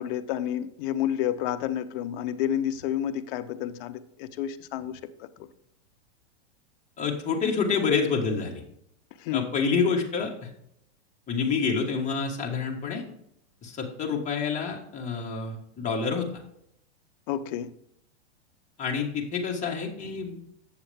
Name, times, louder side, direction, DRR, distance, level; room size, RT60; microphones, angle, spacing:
voice 1, 0.0-5.3 9.2-9.5 17.3-17.7, left 10 dB, 50° left, 11 dB, 0.7 m, -30 dB
voice 2, 7.0-8.6 9.3-10.5 11.3-13.0 13.6-16.3 18.8-20.4, left 5 dB, 20° left, 0 dB, 1.5 m, -28 dB
7.9 x 6.9 x 3.4 m, 0.74 s
supercardioid pair, 140°, 35 cm